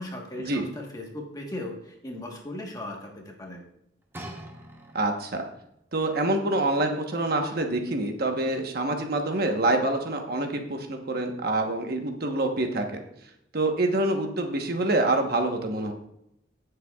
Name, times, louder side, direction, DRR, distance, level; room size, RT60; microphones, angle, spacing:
voice 1, 0.0-3.7, left 1 dB, 20° left, -1 dB, 1.3 m, -37 dB
sound 1, 4.1-5.4 6.2-6.3, right 1 dB, 15° right, 0.9 m, -42 dB
voice 2, 4.9-5.4 5.9-12.8 13.5-15.9, right 2 dB, 55° right, 4 dB, 1.1 m, -26 dB
17.5 x 6.7 x 2.4 m, 0.77 s
head